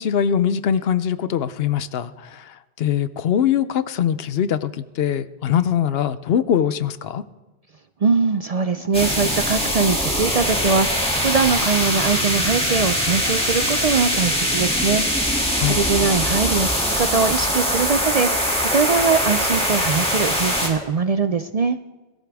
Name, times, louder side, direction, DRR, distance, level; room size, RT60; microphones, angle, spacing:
voice 1, 0.0-2.1 2.8-7.2 15.6-15.8, left 9 dB, 70° left, 14 dB, 0.8 m, -22 dB
voice 2, 8.0-15.0 15.6-21.8, right 5 dB, 50° right, 10 dB, 0.5 m, -22 dB
sound 1, 8.9-20.7, equal, 5° left, 2.4 m, -22 dB
22.0 x 13.5 x 3.5 m, 1.1 s
omnidirectional pair, 1.1 m